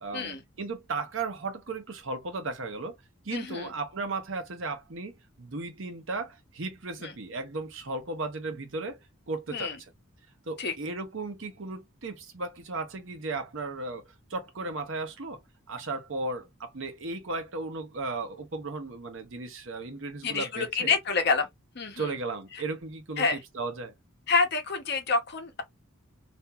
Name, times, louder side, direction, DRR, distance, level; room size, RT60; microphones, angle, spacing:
voice 1, 0.0-3.0 3.2-9.0 9.3-9.7 10.5-14.0 14.3-15.4 15.7-20.9 22.0-23.9, right 3 dB, 70° right, 0.8 m, -35 dB
voice 2, 3.3-3.7 7.0-7.1 9.5-9.8 10.6-10.7 20.2-21.5 21.8-22.1 22.5-22.6 23.2-23.4 24.3-25.6, left 4 dB, 55° left, 0.7 m, -28 dB
2.8 x 2.5 x 2.3 m
head